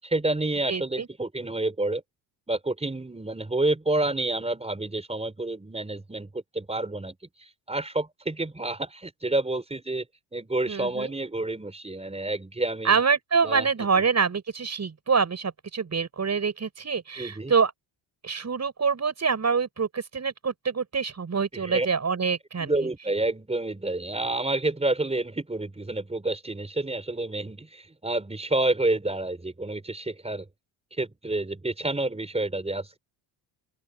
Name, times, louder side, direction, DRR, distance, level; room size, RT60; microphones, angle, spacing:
voice 1, 0.0-2.0 2.5-10.1 10.3-13.0 13.4-13.7 17.1-17.5 21.5-21.9 22.6-30.5 30.9-33.0, right 2 dB, 15° right, 5.0 m, -29 dB
voice 2, 0.7-1.1 10.7-11.1 12.8-17.7 18.2-22.7, right 5 dB, 35° right, 7.7 m, -26 dB
open air
cardioid pair, 110°, 47 cm